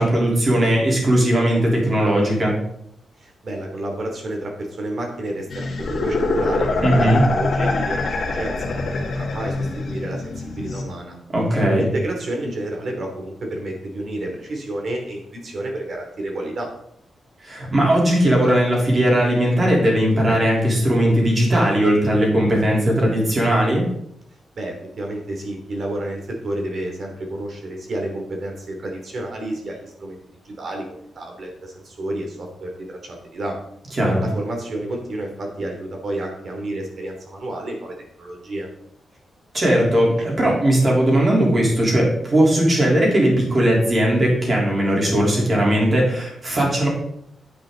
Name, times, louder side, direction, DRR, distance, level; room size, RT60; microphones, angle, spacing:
voice 1, 0.0-2.6 6.8-7.3 11.3-11.9 17.4-23.9 34.0-34.2 39.5-46.9, right 1 dB, 25° right, -2 dB, 3.4 m, -18 dB
voice 2, 3.2-8.9 9.1-11.2 11.8-16.7 24.6-30.2 30.4-30.8 31.1-33.5 34.2-38.7 40.2-40.3, right 1 dB, 45° right, 1 dB, 2.8 m, -30 dB
sound 1, 5.5-10.8, left 3 dB, 50° left, 1.8 m, -24 dB
9.8 x 8.8 x 3.9 m, 0.72 s
wide cardioid pair, 170°, 0 cm